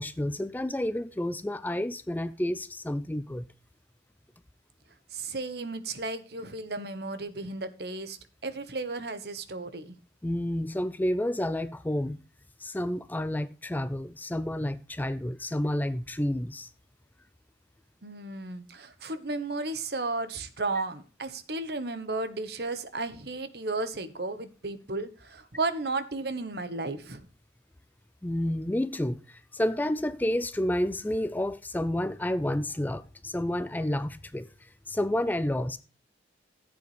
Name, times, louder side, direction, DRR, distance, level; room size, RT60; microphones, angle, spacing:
voice 1, 0.0-3.5 10.2-12.2 12.6-16.7 28.2-35.8, left 1 dB, 10° left, 0.4 m, -30 dB
voice 2, 5.1-8.2 8.4-10.0 18.0-27.2, right 3 dB, 60° right, 1.1 m, -34 dB
14.5 x 8.2 x 3.2 m
head